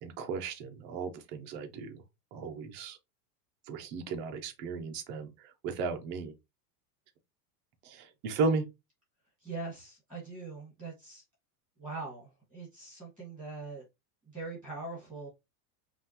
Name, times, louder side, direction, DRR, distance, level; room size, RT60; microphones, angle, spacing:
voice 1, 0.0-2.0 2.3-3.0 3.7-6.3 7.8-8.7, right 4 dB, 25° right, 0.4 m, -35 dB
voice 2, 9.4-11.2 11.8-13.8 14.3-15.3, right 3 dB, 5° left, 1.7 m, -42 dB
5.5 x 2.4 x 2.8 m
supercardioid pair, 165°, 47 cm